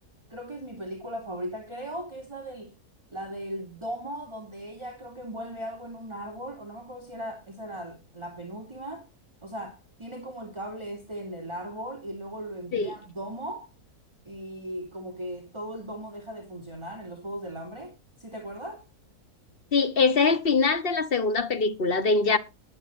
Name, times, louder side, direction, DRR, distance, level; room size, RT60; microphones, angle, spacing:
voice 1, 0.3-2.7 3.1-9.1 9.4-13.7 14.3-18.8, right 1 dB, 20° right, 2.7 m, -38 dB
voice 2, 19.7-22.4, left 4 dB, 40° left, 1.5 m, -23 dB
20.0 x 8.5 x 2.7 m
omnidirectional pair, 1.6 m